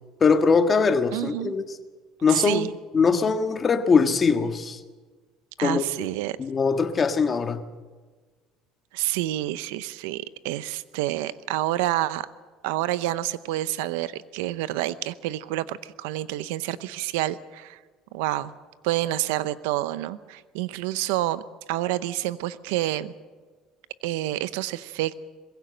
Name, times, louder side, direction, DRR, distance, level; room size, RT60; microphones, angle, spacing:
voice 1, 0.2-1.6 2.2-2.7 2.9-4.8 5.6-5.8 6.4-7.6, left 5 dB, 30° left, 1.6 m, -21 dB
voice 2, 1.1-1.6 2.3-2.7 5.6-6.4 8.9-12.3 12.6-17.8 18.1-18.5 18.8-21.4 21.7-23.1 24.0-25.2, right 15 dB, 90° right, 0.7 m, -28 dB
22.0 x 16.0 x 7.8 m
supercardioid pair, 100°, 0 cm